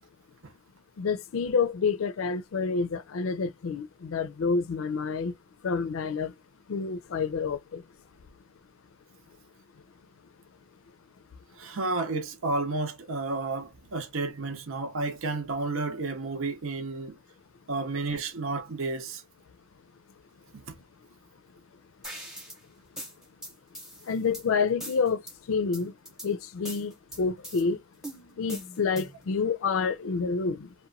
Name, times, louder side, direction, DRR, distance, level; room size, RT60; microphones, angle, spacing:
voice 1, 1.0-5.4 5.6-6.3 6.7-7.8 24.0-25.2 25.5-25.9 26.2-27.8 28.4-30.7, left 5 dB, 75° left, 0.4 m, -28 dB
voice 2, 11.6-17.2 17.7-19.2 20.5-20.7, right 3 dB, 75° right, 0.6 m, -31 dB
sound 1, 22.0-22.6 23.0-24.4 24.8-25.3 25.7-26.3 26.6-27.6 28.0-29.2, equal, ahead, 0.8 m, -41 dB
2.9 x 2.1 x 2.5 m
head